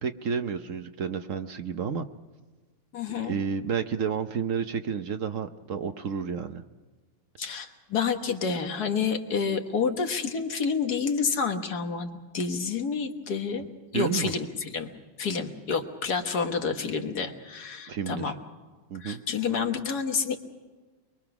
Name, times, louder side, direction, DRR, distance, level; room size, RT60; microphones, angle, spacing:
voice 1, 0.0-2.1 3.2-6.6 13.9-14.3 17.9-18.3 18.9-19.2, right 6 dB, 55° right, 8 dB, 1.0 m, -30 dB
voice 2, 2.9-3.3 7.4-13.7 13.9-14.9 15.2-18.3 19.0-20.4, left 5 dB, 55° left, 6 dB, 1.8 m, -29 dB
23.5 x 23.0 x 6.0 m, 1.3 s
omnidirectional pair, 2.1 m